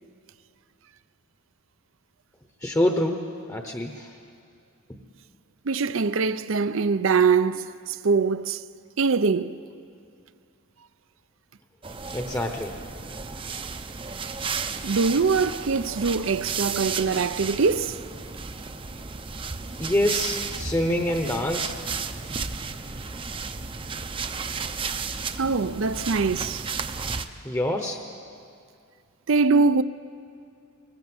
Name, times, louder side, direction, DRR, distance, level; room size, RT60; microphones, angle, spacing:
voice 1, 2.6-3.2 3.5-4.2 4.9-5.0 12.0-12.8 13.5-13.6 19.8-21.8 27.4-28.0, left 1 dB, 15° left, 0.9 m, -26 dB
voice 2, 5.7-8.6 9.0-9.5 14.8-18.0 25.4-26.6 29.3-29.8, right 4 dB, 70° right, 0.6 m, -23 dB
sound 1, 11.8-27.3, right 5 dB, 25° right, 0.6 m, -33 dB
21.0 x 20.0 x 7.9 m
head